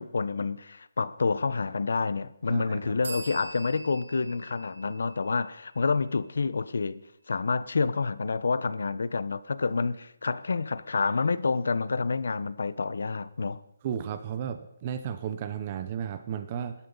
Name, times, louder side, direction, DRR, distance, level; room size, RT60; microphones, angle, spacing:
voice 1, 0.0-7.0 7.3-13.6, left 4 dB, 70° left, 1.0 m, -28 dB
voice 2, 2.5-2.9 13.8-16.7, right 8 dB, 20° right, 0.8 m, -34 dB
sound 1, 3.0-6.6, right 2 dB, 80° right, 5.0 m, -44 dB
26.5 x 13.0 x 4.1 m
hypercardioid pair, 175°, 0 cm